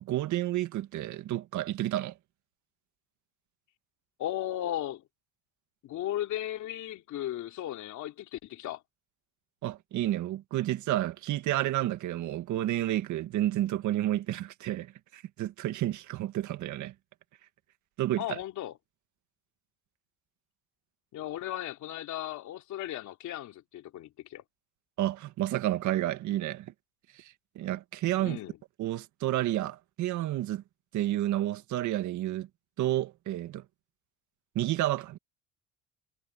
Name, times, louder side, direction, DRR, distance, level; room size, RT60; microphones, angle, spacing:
voice 1, 0.0-2.1 9.6-16.9 18.0-18.4 25.0-26.7 27.1-28.4 28.8-30.6 30.9-32.5 32.8-33.6 34.6-35.2, right 14 dB, 65° right, 1.9 m, -30 dB
voice 2, 4.2-5.0 5.8-8.8 18.2-18.7 21.1-24.4 28.2-28.6, left 13 dB, 65° left, 3.3 m, -36 dB
cardioid pair, 100°, 32 cm